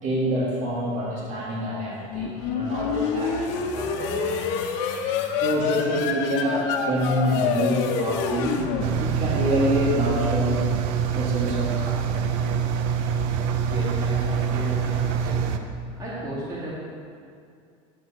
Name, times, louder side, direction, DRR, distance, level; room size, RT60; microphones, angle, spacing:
voice 1, 0.0-4.7 5.4-8.6 9.0-10.7 11.1-12.2, equal, 50° right, -5 dB, 2.3 m, -26 dB
sound 1, 2.1-9.7, left 6 dB, 65° left, 1.0 m, -27 dB
Engine, 8.8-15.6, right 7 dB, 70° right, 0.7 m, -25 dB
voice 2, 13.4-15.4 16.0-16.7, right 1 dB, 25° right, -8 dB, 2.6 m, -34 dB
10.0 x 8.1 x 4.4 m, 2.3 s
supercardioid pair, 140°, 16 cm